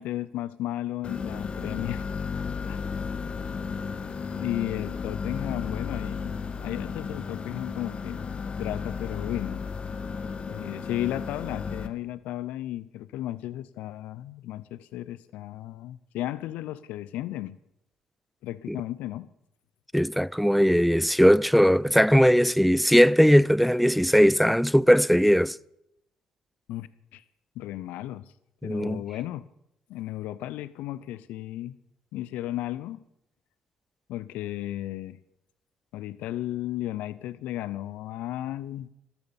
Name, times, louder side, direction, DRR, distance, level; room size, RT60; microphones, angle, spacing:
voice 1, 0.0-2.1 2.7-2.8 4.3-8.3 8.6-9.7 10.5-17.6 18.4-19.3 26.7-27.2 27.6-28.3 28.6-29.4 29.9-31.8 32.1-33.0 34.1-35.2 35.9-38.9, left 14 dB, 75° left, 0.5 m, -34 dB
sound 1, 1.0-11.9, left 5 dB, 45° left, 1.5 m, -34 dB
voice 2, 19.9-25.6 28.6-29.0, equal, ahead, 0.4 m, -19 dB
13.0 x 12.5 x 7.0 m
supercardioid pair, 60°, 3 cm